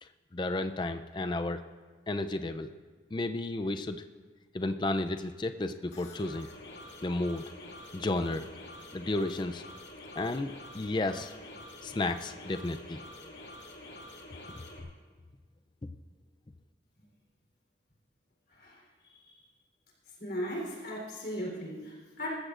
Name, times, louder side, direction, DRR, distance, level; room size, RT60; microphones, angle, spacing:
voice 1, 0.0-1.6 2.1-2.7 3.1-4.0 4.5-6.5 7.0-7.4 7.9-8.5 8.9-9.6 10.2-11.3 11.8-13.3 15.8-15.9, left 2 dB, 25° left, 8 dB, 0.4 m, -33 dB
sound 1, 5.9-14.8, left 1 dB, 75° left, 2.1 m, -47 dB
voice 2, 18.5-19.3 20.2-22.3, equal, 55° left, -2 dB, 3.6 m, -38 dB
20.0 x 14.5 x 2.5 m, 1.4 s
head